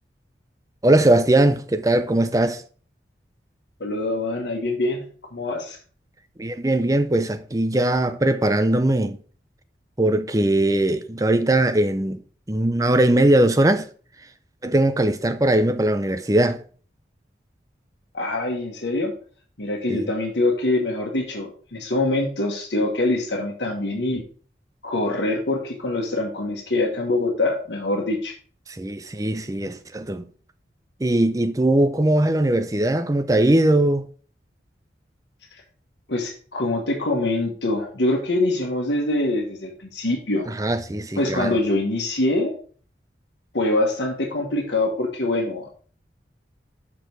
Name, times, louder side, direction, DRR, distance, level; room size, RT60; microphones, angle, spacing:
voice 1, 0.8-2.6 6.4-9.2 10.0-12.2 12.5-13.9 14.6-16.6 19.9-20.0 28.7-30.2 31.0-34.1 40.5-41.6, right 1 dB, 20° right, 0.5 m, -20 dB
voice 2, 3.8-5.0 5.3-5.8 18.1-19.1 19.6-24.2 24.8-28.3 36.1-40.5 41.2-42.5 43.5-45.7, left 2 dB, 75° left, 1.4 m, -24 dB
6.0 x 5.1 x 6.1 m
head